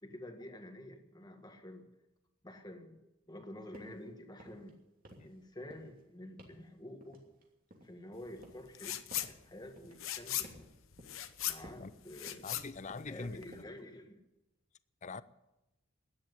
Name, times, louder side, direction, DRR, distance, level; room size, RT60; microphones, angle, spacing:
voice 1, 0.0-1.9 2.4-3.0 3.3-4.8 5.2-7.2 7.8-9.0 9.3-10.7 11.4-12.7 13.1-14.3, left 1 dB, 20° left, 1.7 m, -49 dB
sound 1, 3.7-4.0 4.3-4.7 5.0-5.4 5.7-6.0 6.4-6.7 7.0-8.0 8.4-8.7 9.1-9.4 9.8-10.0 10.4-10.7 11.0-11.3 11.6-11.9 12.3-12.6 12.9-13.2 13.5-13.8, right 1 dB, 45° right, 2.9 m, -55 dB
sound 2, 8.7-9.3 9.6-13.6, left 13 dB, 80° left, 0.9 m, -39 dB
voice 2, 12.4-13.7 15.0-15.2, left 4 dB, 35° left, 0.5 m, -43 dB
13.0 x 10.5 x 9.6 m
head